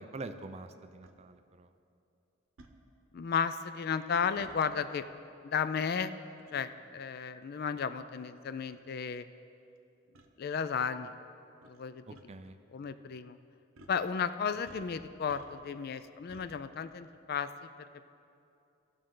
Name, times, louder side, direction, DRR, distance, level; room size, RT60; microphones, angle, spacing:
voice 1, 0.0-1.7 12.1-12.6 14.5-14.6, right 2 dB, 30° right, 9 dB, 0.4 m, -45 dB
sound 1, 1.0-1.2 2.6-2.8 4.3-4.6 6.4-6.6 7.4-7.5 8.3-8.4 8.7-8.8 10.1-10.3 11.6-11.8 12.1-12.2 13.7-14.0 14.6-15.8 16.3-16.5, right 2 dB, 90° right, 0.8 m, -56 dB
voice 2, 3.1-5.0 5.4-6.1 6.5-9.3 10.4-11.1 11.6-12.0 12.7-13.4 13.9-17.5 17.9-18.0, left 6 dB, 50° left, 12 dB, 0.3 m, -34 dB
16.5 x 6.4 x 3.8 m, 2.6 s
head